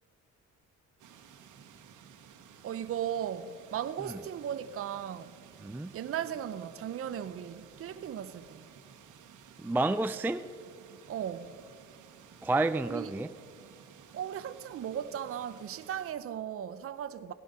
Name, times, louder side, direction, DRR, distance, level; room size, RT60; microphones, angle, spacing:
sound 1, 1.0-16.1, right 8 dB, 80° right, 1.3 m, -55 dB
voice 1, 2.6-5.4 5.9-8.7 11.1-11.6 12.8-13.1 14.1-17.3, right 9 dB, 50° right, 0.6 m, -37 dB
voice 2, 9.6-10.5 12.4-13.3, right 2 dB, 5° right, 0.3 m, -29 dB
16.5 x 11.0 x 5.4 m
cardioid pair, 90°, 30 cm